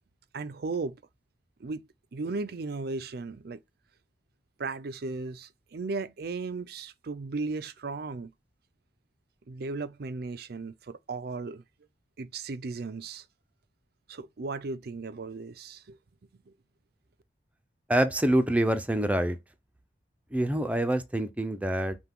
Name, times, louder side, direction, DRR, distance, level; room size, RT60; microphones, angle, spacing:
voice 1, 0.3-1.0 1.6-1.8 2.1-3.6 4.6-8.3 9.5-11.6 12.2-13.2 14.1-16.0 16.5-16.6, right 3 dB, 60° right, 0.5 m, -36 dB
voice 2, 17.9-19.4 20.3-22.0, right 1 dB, 10° right, 0.6 m, -26 dB
5.8 x 2.3 x 3.6 m
head